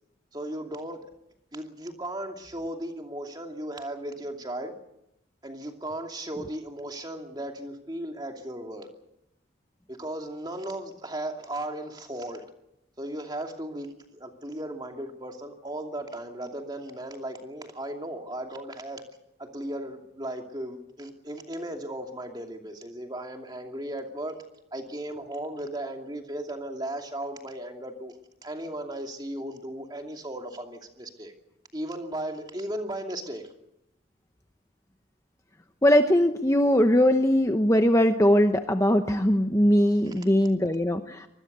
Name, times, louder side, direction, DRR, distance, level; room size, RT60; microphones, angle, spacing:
voice 1, 0.3-1.1 1.5-4.7 5.4-8.9 9.9-12.4 13.0-19.0 19.4-24.4 24.7-31.3 31.7-33.5 40.0-40.2, right 1 dB, 20° right, 3 dB, 2.7 m, -36 dB
voice 2, 35.8-41.3, equal, 15° left, 6 dB, 0.9 m, -21 dB
25.0 x 20.5 x 6.9 m, 0.84 s
head